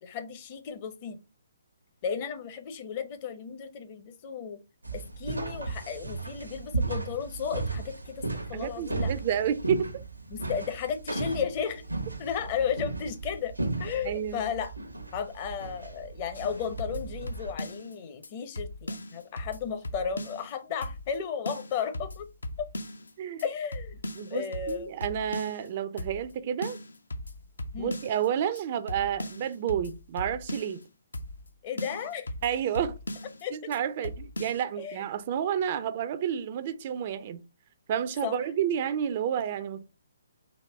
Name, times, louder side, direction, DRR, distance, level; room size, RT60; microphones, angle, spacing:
voice 1, 0.0-1.2 2.0-4.6 4.9-9.1 10.3-11.8 12.2-13.5 13.8-14.7 15.1-22.2 23.4-24.0 24.3-24.9 27.7-27.9 31.6-32.3 33.4-33.5 34.8-35.0 38.2-38.4, left 7 dB, 35° left, 0.7 m, -34 dB
sound 1, 4.8-17.5, right 3 dB, 85° right, 0.8 m, -35 dB
voice 2, 8.5-9.9 14.0-14.5 23.2-23.4 24.2-26.8 27.8-30.8 32.4-33.0 33.5-37.4 37.9-39.8, right 9 dB, 40° right, 0.4 m, -30 dB
sound 2, 16.3-17.9 18.2-18.3 18.6-20.5 20.8-21.2 21.5-23.1 23.4-23.5 23.7-25.7 26.0-26.3 26.6-28.3 28.6-28.7 28.9-30.8 31.1-31.5 31.8-33.4 33.7-33.8 34.0-34.6, left 1 dB, 70° left, 0.7 m, -38 dB
4.1 x 2.8 x 4.3 m
figure-of-eight pair, 130°, 0 cm